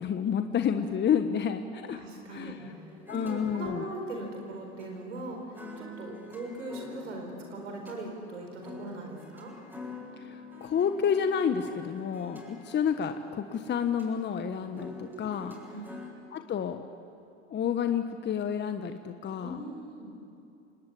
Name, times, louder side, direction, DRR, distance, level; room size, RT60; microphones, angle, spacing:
voice 1, 0.0-2.0 2.3-2.6 3.1-3.8 10.2-15.5 16.3-16.9 17.5-19.6, left 7 dB, 30° left, 8 dB, 1.2 m, -30 dB
voice 2, 1.9-2.6 3.2-9.6 14.7-15.3 15.7-15.8 19.4-20.1, right 2 dB, 85° right, 2 dB, 4.5 m, -40 dB
sound 1, 2.6-16.1, left 3 dB, 5° right, 7.7 m, -47 dB
29.0 x 19.5 x 8.7 m, 2.7 s
hypercardioid pair, 85°, 35 cm